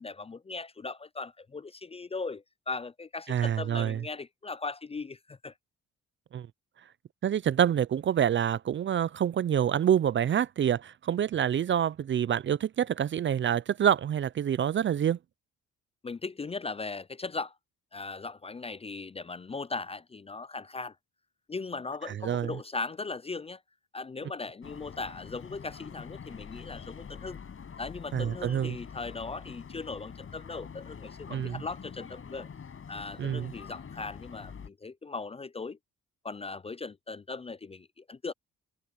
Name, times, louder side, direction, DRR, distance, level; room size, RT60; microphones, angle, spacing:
voice 1, 0.0-5.5 16.0-17.5 17.9-20.9 21.5-23.6 23.9-27.4 27.8-32.5 32.9-35.8 36.2-38.3, left 3 dB, 20° left, 0.4 m, -38 dB
voice 2, 3.3-4.0 6.3-6.5 7.2-15.2 22.2-22.5 28.1-28.8 31.3-31.6 33.2-33.5, right 9 dB, 40° right, 0.5 m, -27 dB
sound 1, 24.6-34.7, left 6 dB, 45° left, 5.8 m, -45 dB
cardioid pair, 90°, 30 cm